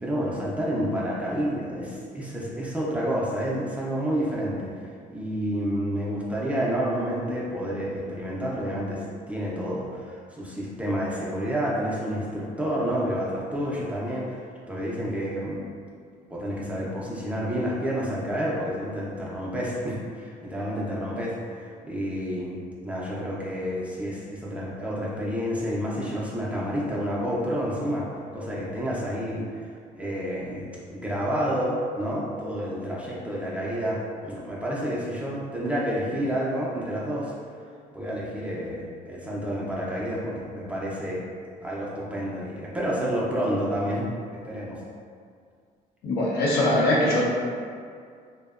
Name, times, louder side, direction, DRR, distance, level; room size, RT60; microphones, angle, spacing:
voice 1, 0.0-4.7 5.1-14.4 14.7-15.6 16.3-29.6 29.9-37.3 37.9-41.2 41.6-44.8, equal, 10° right, -6 dB, 0.4 m, -29 dB
voice 2, 46.0-47.3, left 1 dB, 75° left, -5 dB, 0.6 m, -22 dB
2.6 x 2.1 x 2.3 m, 2.2 s
cardioid pair, 110°, 17 cm